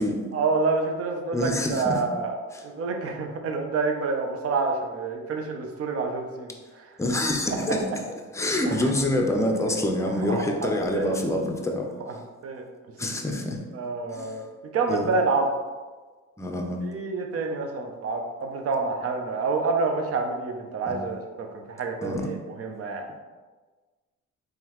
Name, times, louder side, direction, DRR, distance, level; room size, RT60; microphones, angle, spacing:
voice 1, 0.3-2.3 2.6-6.5 7.5-7.6 8.6-8.9 10.3-11.2 12.4-12.7 13.7-14.4 14.7-15.5 16.8-23.0, right 4 dB, 50° right, 3 dB, 0.7 m, -28 dB
voice 2, 1.3-2.0 2.5-2.6 7.0-8.0 8.3-11.9 13.0-13.6 14.1-14.3 14.9-15.1 16.4-16.8 20.9-21.1 22.0-22.3, left 1 dB, 10° left, 2 dB, 0.6 m, -26 dB
3.7 x 3.2 x 3.0 m, 1.3 s
cardioid pair, 90°, 30 cm